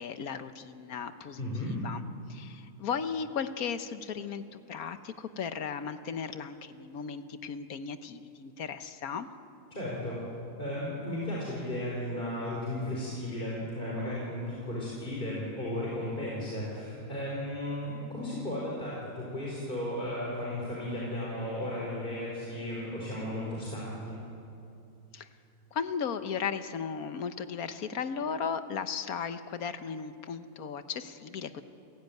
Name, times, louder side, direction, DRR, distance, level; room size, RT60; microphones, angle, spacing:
voice 1, 0.0-1.4 1.8-2.0 2.3-9.3 25.1-25.3 25.7-31.6, left 6 dB, 85° left, 10 dB, 1.5 m, -36 dB
voice 2, 1.4-1.8 9.7-10.2 10.6-24.2, left 1 dB, 35° left, -5 dB, 4.8 m, -35 dB
29.0 x 16.5 x 9.4 m, 2.7 s
omnidirectional pair, 1.5 m